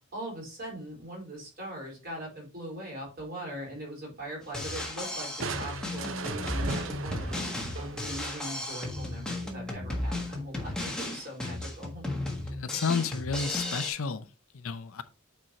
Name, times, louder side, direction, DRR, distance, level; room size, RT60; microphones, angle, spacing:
voice 1, 0.1-12.0, right 1 dB, 45° right, 4.3 m, -40 dB
Drum kit, 4.4-13.9, left 1 dB, 5° left, 1.4 m, -35 dB
Crushing, 5.4-8.8, right 4 dB, 65° right, 0.7 m, -37 dB
voice 2, 12.4-14.3 14.5-15.0, left 5 dB, 75° left, 0.6 m, -31 dB
8.9 x 4.5 x 3.2 m
head